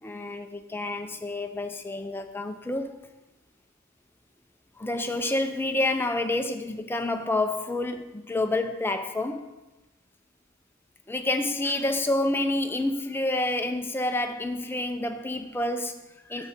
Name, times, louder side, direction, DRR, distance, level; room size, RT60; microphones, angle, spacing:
voice 1, 0.0-3.0 4.8-9.4 11.1-16.5, left 2 dB, 10° left, 6 dB, 0.5 m, -28 dB
8.5 x 7.1 x 4.2 m, 1.0 s
head